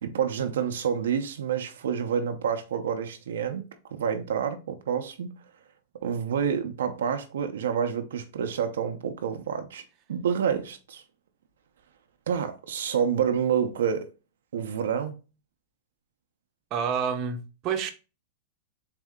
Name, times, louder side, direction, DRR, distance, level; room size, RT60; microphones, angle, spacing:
voice 1, 0.0-3.6 3.9-5.3 6.0-9.8 10.1-11.0 12.3-14.1 14.5-15.2, right 7 dB, 85° right, 0.6 m, -28 dB
voice 2, 16.7-17.9, right 7 dB, 35° right, 0.7 m, -28 dB
4.1 x 2.7 x 3.6 m
hypercardioid pair, 135°, 0 cm